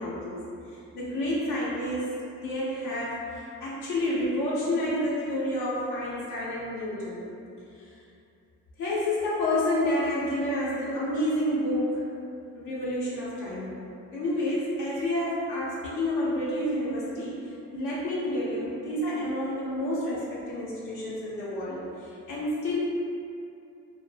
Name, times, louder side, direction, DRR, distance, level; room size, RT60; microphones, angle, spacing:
voice 1, 0.0-2.1 2.4-7.3 7.8-7.9 8.8-12.0 12.6-13.8 14.1-22.8, left 1 dB, 80° left, -8 dB, 0.6 m, -29 dB
2.1 x 2.0 x 3.2 m, 2.6 s
cardioid pair, 90°, 30 cm